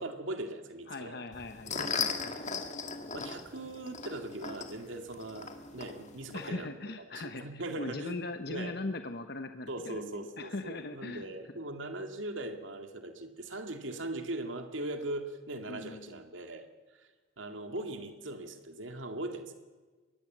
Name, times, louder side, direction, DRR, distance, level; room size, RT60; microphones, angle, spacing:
voice 1, 0.0-1.2 1.7-2.0 3.1-6.7 7.1-8.2 8.5-8.8 9.7-16.7 17.0-17.1 17.4-19.5, right 1 dB, 85° right, 6 dB, 2.1 m, -40 dB
voice 2, 0.9-2.6 3.6-3.7 6.3-11.3 15.7-16.2, left 2 dB, 55° left, 7 dB, 1.0 m, -40 dB
sound 1, 1.3-6.5, left 5 dB, 35° left, 1.9 m, -38 dB
23.0 x 19.0 x 7.4 m, 1.4 s
head